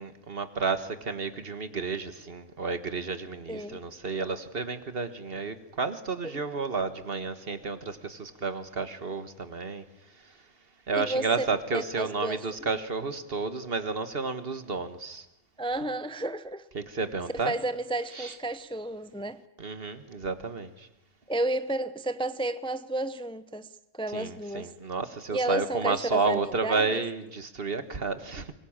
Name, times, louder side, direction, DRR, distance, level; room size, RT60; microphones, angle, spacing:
voice 1, 0.0-9.8 10.9-15.2 16.7-17.5 18.1-18.3 19.6-20.9 24.1-28.5, right 4 dB, 55° right, 1.7 m, -31 dB
voice 2, 3.5-3.8 10.9-12.7 15.6-16.6 17.3-19.4 21.3-23.7 23.9-24.7 25.3-27.0, right 1 dB, 5° left, 0.7 m, -32 dB
24.0 x 22.0 x 8.8 m
omnidirectional pair, 1.2 m